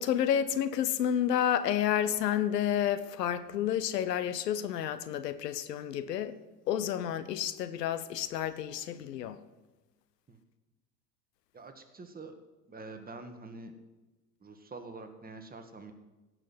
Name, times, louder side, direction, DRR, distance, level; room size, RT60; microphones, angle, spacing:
voice 1, 0.0-6.3 6.7-9.4, left 10 dB, 75° left, 1.1 m, -30 dB
voice 2, 11.5-12.3 12.7-13.7 14.4-15.9, right 3 dB, 20° right, 1.9 m, -46 dB
16.5 x 6.4 x 7.9 m
hypercardioid pair, 80°, 49 cm